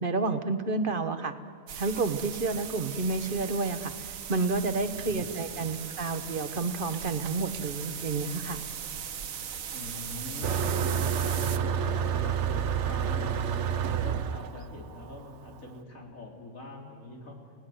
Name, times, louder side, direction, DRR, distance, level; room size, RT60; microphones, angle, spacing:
voice 1, 0.0-1.3 1.8-8.6, right 3 dB, 40° right, 9 dB, 1.4 m, -30 dB
sound 1, 1.7-11.6, right 8 dB, 80° right, 1.4 m, -39 dB
voice 2, 4.9-5.2 9.7-17.4, left 2 dB, 90° left, 0 dB, 4.0 m, -43 dB
Motor vehicle (road), 10.4-15.6, right 8 dB, 60° right, 1.1 m, -29 dB
29.5 x 18.5 x 7.9 m, 2.5 s
omnidirectional pair, 1.4 m